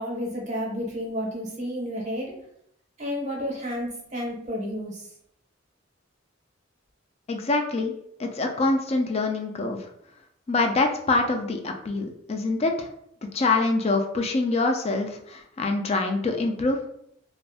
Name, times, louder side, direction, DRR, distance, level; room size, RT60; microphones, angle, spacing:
voice 1, 0.0-2.3 3.0-5.1, equal, 35° right, -2 dB, 0.7 m, -31 dB
voice 2, 7.3-7.9 8.2-9.9 10.5-12.9 13.3-16.8, left 3 dB, 30° left, 4 dB, 0.3 m, -25 dB
2.4 x 2.0 x 3.4 m, 0.74 s
head